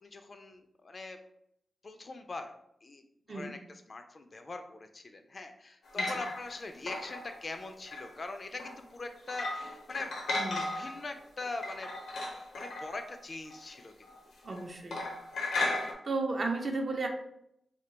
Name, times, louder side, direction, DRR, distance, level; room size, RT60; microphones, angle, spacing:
voice 1, 0.0-1.2 1.8-2.5 2.8-10.1 10.7-11.9 12.2-14.1, left 3 dB, 50° left, 6 dB, 0.3 m, -42 dB
sound 1, 5.9-6.6 6.9-8.2 8.6-8.8 9.3-11.1 11.4-13.8 14.0-14.2 14.4-14.6 14.9-15.9, left 2 dB, 85° left, 0.7 m, -36 dB
voice 2, 10.4-10.7 14.4-15.0 15.7-17.1, right 3 dB, 50° right, 3 dB, 0.5 m, -34 dB
2.3 x 2.2 x 3.8 m, 0.76 s
cardioid pair, 60°, 0 cm